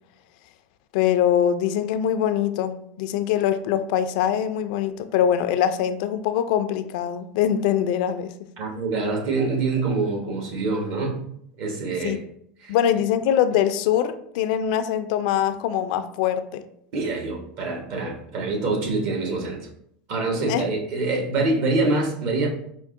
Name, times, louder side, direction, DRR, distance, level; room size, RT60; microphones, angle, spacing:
voice 1, 0.9-8.3 12.0-12.2 12.7-16.7 20.5-20.6, left 10 dB, 70° left, 10 dB, 0.3 m, -23 dB
voice 2, 8.6-11.2 11.6-12.2 12.6-12.8 16.9-19.7 20.1-22.5, right 3 dB, 60° right, 1 dB, 1.1 m, -25 dB
4.5 x 2.1 x 3.6 m, 0.70 s
supercardioid pair, 125°, 5 cm